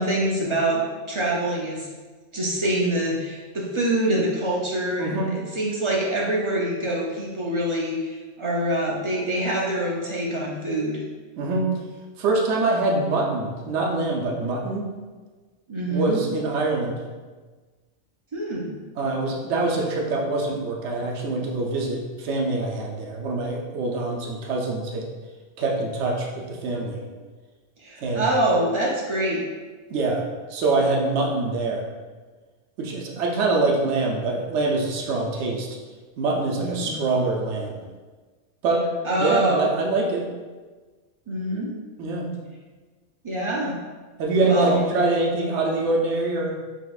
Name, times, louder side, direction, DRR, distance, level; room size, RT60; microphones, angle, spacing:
voice 1, 0.0-1.9 2.3-11.0 15.7-16.2 18.3-18.8 27.8-29.4 36.6-37.0 39.0-39.7 41.3-41.7 43.2-43.8 44.4-44.8, right 1 dB, 45° right, -3 dB, 0.4 m, -25 dB
voice 2, 5.0-5.3 11.4-11.7 12.2-14.9 15.9-17.0 19.0-25.1 25.6-27.0 28.0-28.2 29.9-30.2 30.5-31.9 32.8-35.7 36.2-37.8 38.6-38.9 39.2-40.3 42.0-42.3 44.2-46.5, right 3 dB, 70° right, 0 dB, 0.9 m, -24 dB
5.2 x 2.9 x 2.3 m, 1.4 s
omnidirectional pair, 1.3 m